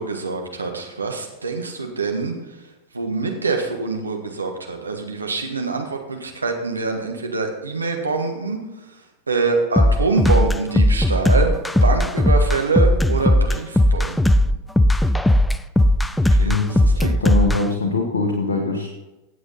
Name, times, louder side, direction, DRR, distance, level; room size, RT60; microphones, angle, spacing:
voice 1, 0.0-2.3 2.9-8.6 9.3-11.5 11.8-14.4 16.4-17.1, right 4 dB, 80° right, 2 dB, 1.5 m, -25 dB
sound 1, 9.8-17.6, left 1 dB, 5° left, 0.4 m, -17 dB
voice 2, 16.4-18.9, left 3 dB, 70° left, 2 dB, 1.3 m, -23 dB
16.0 x 7.9 x 4.1 m, 1.0 s
figure-of-eight pair, 90°, 0 cm